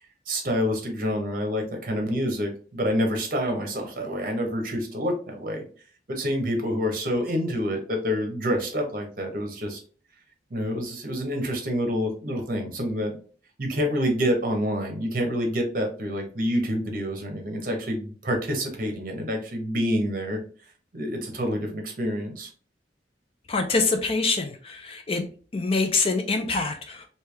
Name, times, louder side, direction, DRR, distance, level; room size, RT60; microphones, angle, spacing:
voice 1, 0.3-5.6 6.1-9.8 10.5-13.2 13.6-20.4 20.9-22.5, equal, 50° right, 3 dB, 0.9 m, -27 dB
voice 2, 23.5-25.2 25.5-27.1, left 3 dB, 30° left, 5 dB, 0.4 m, -25 dB
3.3 x 2.7 x 3.3 m, 0.42 s
head